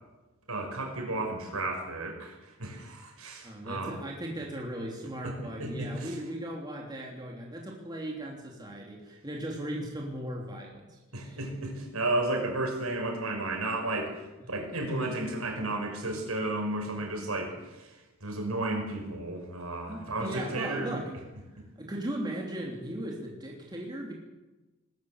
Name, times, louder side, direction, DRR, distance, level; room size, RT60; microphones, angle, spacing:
voice 1, 0.5-4.0 5.2-5.3 5.6-6.1 11.1-14.1 14.5-17.9 18.2-21.0, right 2 dB, 90° right, 3 dB, 5.9 m, -33 dB
voice 2, 3.4-11.4 19.9-21.1 21.8-24.1, right 1 dB, 20° right, -2 dB, 3.2 m, -37 dB
20.5 x 14.0 x 9.8 m, 1.1 s
head